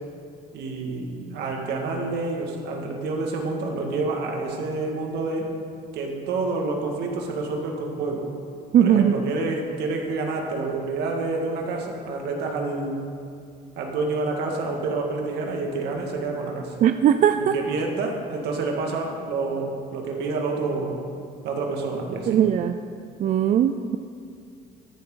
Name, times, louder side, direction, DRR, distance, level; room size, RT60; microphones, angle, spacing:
voice 1, 0.5-5.5 5.9-8.3 8.8-13.0 13.8-16.8 17.4-21.0 21.4-22.4, right 3 dB, 80° right, 1 dB, 2.0 m, -28 dB
voice 2, 8.7-9.2 16.8-17.6 22.3-22.8 23.2-24.0, right 9 dB, 50° right, 9 dB, 0.4 m, -19 dB
13.5 x 10.5 x 3.9 m, 2.4 s
cardioid pair, 110°, 17 cm